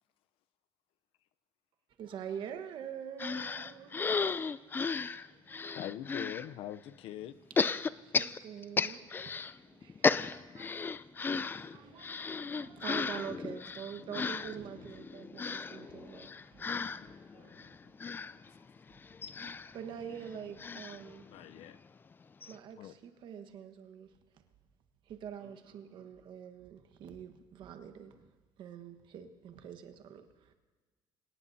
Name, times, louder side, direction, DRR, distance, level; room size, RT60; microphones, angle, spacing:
voice 1, 2.0-4.3 4.7-5.8 8.1-10.8 11.2-16.7 17.0-17.2 19.4-21.3 22.5-24.4 25.1-28.3 28.6-30.5, right 8 dB, 60° right, 1.4 m, -46 dB
sound 1, 3.2-6.5 7.6-9.5 9.8-21.8 22.1-22.2 22.4-22.6, left 5 dB, 20° left, 0.4 m, -35 dB
voice 2, 5.7-7.4 18.0-18.1 21.3-21.8 22.8-22.9, left 12 dB, 75° left, 0.7 m, -42 dB
voice 3, 11.1-11.9 17.3-18.0 25.4-26.4, right 7 dB, 85° right, 3.0 m, -66 dB
26.5 x 18.0 x 2.8 m
cardioid pair, 120°, 9 cm